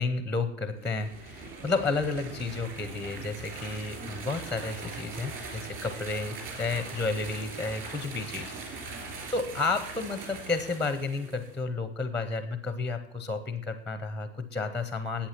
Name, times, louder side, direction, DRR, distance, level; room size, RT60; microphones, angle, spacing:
voice 1, 0.0-15.3, left 3 dB, 5° left, 10 dB, 0.5 m, -32 dB
sound 1, 0.7-11.6, right 4 dB, 35° right, 3.3 m, -41 dB
11.0 x 8.3 x 5.8 m, 0.78 s
supercardioid pair, 140°, 36 cm